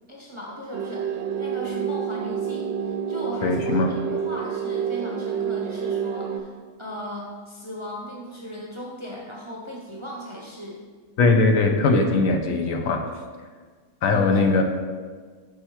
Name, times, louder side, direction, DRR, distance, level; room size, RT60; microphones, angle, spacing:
voice 1, 0.1-6.5 6.8-10.8 14.0-14.4, equal, 30° right, -3 dB, 0.6 m, -37 dB
sound 1, 0.7-6.4, right 7 dB, 65° right, 0.7 m, -28 dB
voice 2, 3.4-3.9 11.2-13.1 14.0-14.6, left 3 dB, 70° left, 4 dB, 1.0 m, -20 dB
5.6 x 5.4 x 4.4 m, 1.5 s
omnidirectional pair, 1.5 m